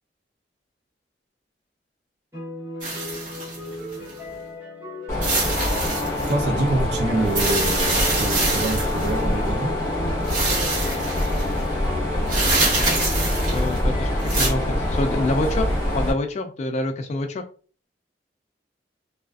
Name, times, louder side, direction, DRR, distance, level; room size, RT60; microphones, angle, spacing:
sound 1, 2.3-15.6, equal, 15° right, 1.1 m, -37 dB
sound 2, 2.8-4.1 5.2-6.3 7.2-9.2 10.2-11.5 12.3-13.8 14.2-14.5, right 2 dB, 50° right, 1.1 m, -25 dB
Mechanisms, 5.1-16.1, left 1 dB, 15° left, 0.9 m, -25 dB
voice 1, 6.3-9.7, right 2 dB, 65° right, 0.6 m, -26 dB
voice 2, 13.5-15.7 15.9-17.4, left 2 dB, 40° left, 0.3 m, -26 dB
2.3 x 2.3 x 2.3 m
head